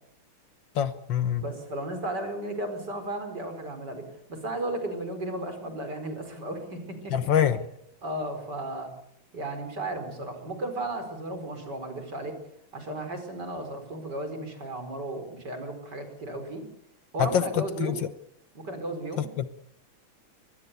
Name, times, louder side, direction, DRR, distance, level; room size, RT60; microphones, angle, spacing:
voice 1, 0.8-1.4 7.1-7.6 17.2-18.0 19.2-19.5, left 9 dB, 65° left, 12 dB, 1.7 m, -25 dB
voice 2, 1.4-4.0 4.3-7.3 8.0-8.9 9.3-12.3 12.7-16.6 17.1-17.9 18.5-19.2, right 1 dB, 50° right, 7 dB, 5.1 m, -34 dB
23.5 x 20.5 x 6.9 m, 0.73 s
omnidirectional pair, 2.3 m